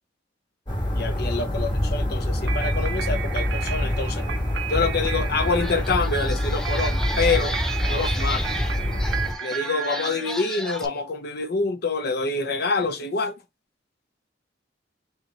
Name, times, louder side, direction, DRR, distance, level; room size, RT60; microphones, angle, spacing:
sound 1, 0.7-9.3, left 1 dB, 25° left, 1.3 m, -26 dB
voice 1, 1.0-4.2 4.7-7.6 7.9-8.4 9.4-13.4, left 4 dB, 60° left, 0.8 m, -26 dB
sound 2, 2.5-10.8, right 8 dB, 80° right, 0.7 m, -34 dB
sound 3, 5.0-5.1 5.5-10.9, equal, 5° left, 0.5 m, -35 dB
3.3 x 3.0 x 4.0 m
head